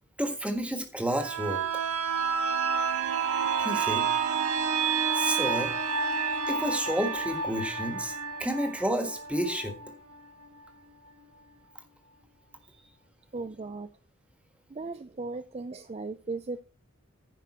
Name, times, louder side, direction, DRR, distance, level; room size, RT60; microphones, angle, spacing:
voice 1, 0.2-1.6 3.6-4.1 5.1-5.7 6.5-9.8, equal, 5° right, 6 dB, 1.5 m, -30 dB
sound 1, 1.1-10.7 11.1-11.2, right 6 dB, 90° right, 1.3 m, -29 dB
voice 2, 12.6-12.9 13.3-13.9 14.7-16.6, right 3 dB, 30° right, 10 dB, 0.4 m, -37 dB
15.0 x 5.4 x 4.3 m, 0.37 s
head